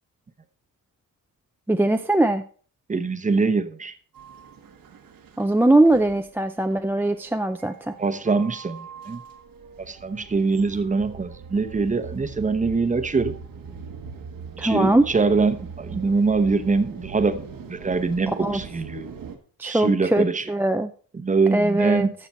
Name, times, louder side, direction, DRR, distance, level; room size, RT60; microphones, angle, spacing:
voice 1, 1.7-2.4 5.4-8.0 14.6-15.1 18.4-18.6 19.6-20.9 21.5-22.1, right 1 dB, 5° right, 7 dB, 0.4 m, -21 dB
voice 2, 2.9-3.9 8.0-9.2 9.8-13.3 14.6-19.1 19.6-20.4 21.1-22.1, right 4 dB, 20° right, 11 dB, 0.8 m, -23 dB
sound 1, 4.1-19.4, right 6 dB, 85° right, 1.5 m, -41 dB
13.5 x 6.7 x 4.3 m, 0.43 s
wide cardioid pair, 130°, 33 cm